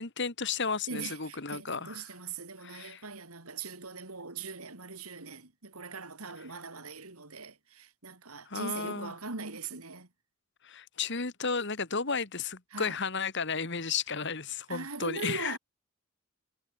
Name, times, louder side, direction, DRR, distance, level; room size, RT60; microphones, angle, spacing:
voice 1, 0.0-2.0 2.6-3.0 8.5-9.1 10.6-15.6, left 5 dB, 55° left, 2.1 m, -33 dB
voice 2, 0.9-10.1 12.7-13.0 14.7-15.6, right 4 dB, 85° right, 3.8 m, -41 dB
head